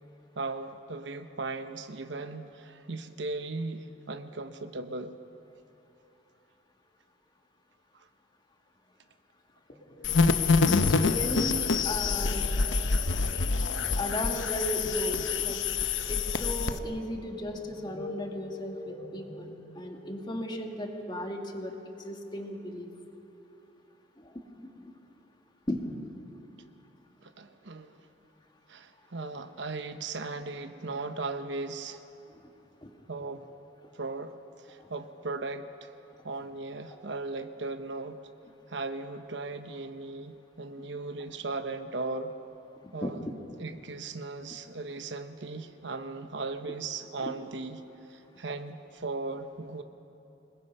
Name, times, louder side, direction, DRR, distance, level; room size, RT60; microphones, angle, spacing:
voice 1, 0.4-5.2 7.9-8.1 27.2-27.9 28.7-32.0 33.1-33.4 33.9-35.9 36.2-38.2 38.7-42.3 42.9-43.3 43.6-47.8 48.1-49.8, right 3 dB, 65° right, 9 dB, 1.0 m, -37 dB
sound 1, 9.7-21.0, left 1 dB, 45° left, 2.9 m, -46 dB
sound 2, 10.0-16.8, left 4 dB, 85° left, 0.9 m, -26 dB
voice 2, 10.6-12.5 14.0-15.6 16.1-22.9 24.2-24.9 25.7-25.8 32.8-32.9 43.0-43.3 47.2-47.3, equal, 25° left, 2 dB, 2.0 m, -36 dB
27.0 x 20.5 x 5.5 m, 2.9 s
head